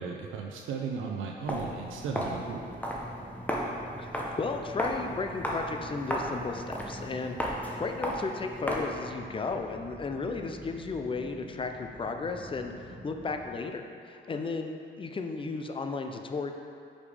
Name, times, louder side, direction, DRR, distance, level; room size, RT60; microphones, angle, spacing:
voice 1, 0.0-2.6, right 5 dB, 80° right, 1 dB, 0.5 m, -35 dB
Walk footsteps, 1.4-9.1, equal, 10° left, 0.9 m, -35 dB
sound 1, 2.2-13.7, right 1 dB, 20° right, 0.7 m, -49 dB
voice 2, 4.3-16.5, left 4 dB, 25° left, 5 dB, 0.5 m, -34 dB
5.2 x 5.1 x 4.9 m, 2.4 s
cardioid pair, 90°, 20 cm